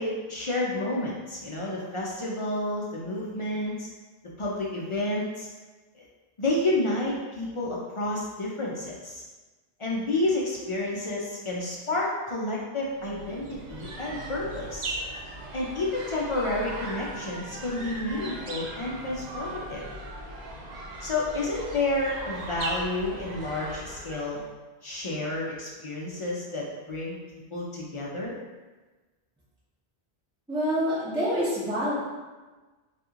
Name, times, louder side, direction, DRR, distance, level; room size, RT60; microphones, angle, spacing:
voice 1, 0.0-3.9 4.4-5.5 5.9-6.1 6.4-9.2 9.8-14.9 15.5-19.8 21.0-24.4 24.8-27.2 27.5-28.3, left 2 dB, 50° left, -4 dB, 0.3 m, -30 dB
sound 1, 12.9-24.5, right 2 dB, 55° right, 0.5 m, -38 dB
voice 2, 30.5-31.9, equal, 5° right, -9 dB, 0.7 m, -26 dB
2.9 x 2.4 x 3.6 m, 1.3 s
omnidirectional pair, 1.1 m